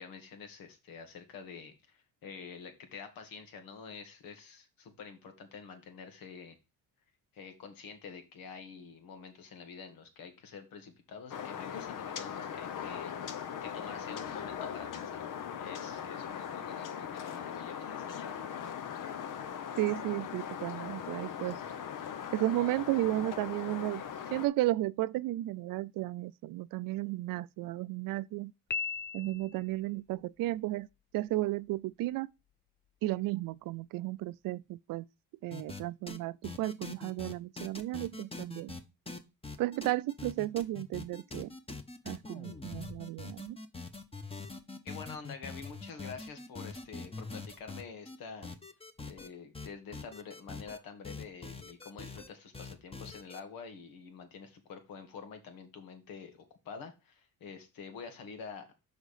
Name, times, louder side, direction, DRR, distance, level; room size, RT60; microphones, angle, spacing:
voice 1, 0.0-6.6 7.3-15.3 15.5-18.5 44.8-48.5 49.0-58.7, left 5 dB, 80° left, 2.1 m, -48 dB
sound 1, 11.3-24.5, left 8 dB, 65° left, 1.1 m, -40 dB
voice 2, 19.8-21.6 22.3-28.5 29.1-30.9 31.1-32.3 33.0-35.0 35.4-38.7 39.6-41.5 42.1-43.6, right 16 dB, 70° right, 0.5 m, -33 dB
Piano, 28.7-29.8, left 5 dB, 30° left, 0.6 m, -37 dB
sound 2, 35.5-35.8 36.1-36.2 36.4-38.8 39.1-48.2 48.4-49.3 49.5-50.8 51.0-52.3 52.5-53.4, left 3 dB, 15° left, 1.2 m, -43 dB
6.4 x 5.1 x 4.9 m
cardioid pair, 95°, 34 cm